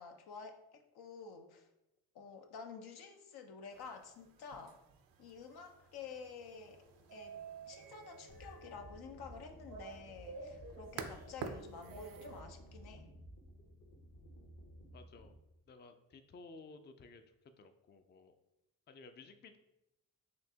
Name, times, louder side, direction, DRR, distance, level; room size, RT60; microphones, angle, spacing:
voice 1, 0.0-1.7 2.1-4.8 5.2-6.8 7.1-7.4 7.7-13.1, left 5 dB, 75° left, 5 dB, 0.6 m, -50 dB
sound 1, 3.7-12.4, right 5 dB, 65° right, 0.5 m, -52 dB
sound 2, 6.0-13.0, right 4 dB, 85° right, 0.9 m, -53 dB
sound 3, 8.3-15.3, equal, 55° left, 0.9 m, -55 dB
voice 2, 14.9-15.3 15.7-17.2 17.6-18.3 18.9-19.6, left 3 dB, 30° left, 8 dB, 0.4 m, -55 dB
4.3 x 2.7 x 2.8 m, 0.88 s
supercardioid pair, 40°, 39 cm